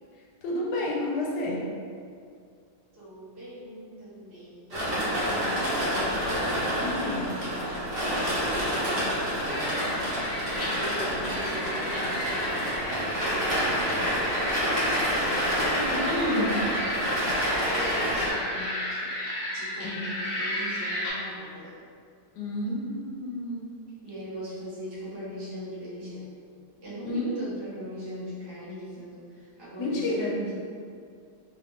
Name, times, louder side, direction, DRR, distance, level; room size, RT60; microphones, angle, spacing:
voice 1, 0.4-1.6 6.8-7.3 15.9-16.5 19.8-20.0 22.3-23.7 27.0-27.4 29.8-30.3, left 1 dB, 90° left, -3 dB, 1.3 m, -30 dB
voice 2, 2.9-6.4 6.9-7.8 9.2-10.0 10.4-13.6 14.2-16.0 17.7-19.2 19.5-21.7 24.0-26.3 26.8-30.5, equal, 15° right, -11 dB, 1.0 m, -41 dB
sound 1, 4.7-18.3, equal, 55° right, 1.4 m, -28 dB
sound 2, 9.5-21.1, left 1 dB, 55° left, 1.1 m, -34 dB
3.3 x 2.5 x 3.5 m, 2.3 s
omnidirectional pair, 1.8 m